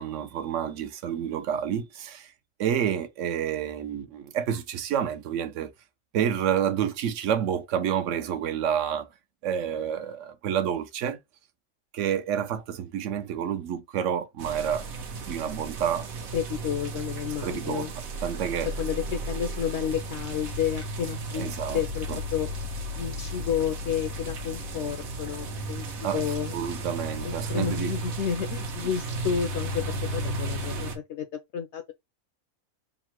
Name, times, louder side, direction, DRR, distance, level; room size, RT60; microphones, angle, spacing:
voice 1, 0.0-2.3 2.6-5.7 6.1-9.1 9.4-11.2 11.9-14.9 15.3-16.1 17.4-17.9 18.2-18.7 21.4-21.8 22.1-22.2 26.0-26.2 26.5-27.9, right 9 dB, 70° right, 0.9 m, -29 dB
sound 1, 14.4-31.0, right 1 dB, 85° right, 1.3 m, -34 dB
voice 2, 16.3-17.9 18.8-22.5 23.0-25.9 26.1-26.5 27.2-31.8, left 8 dB, 65° left, 0.8 m, -31 dB
3.7 x 2.1 x 4.3 m
omnidirectional pair, 1.4 m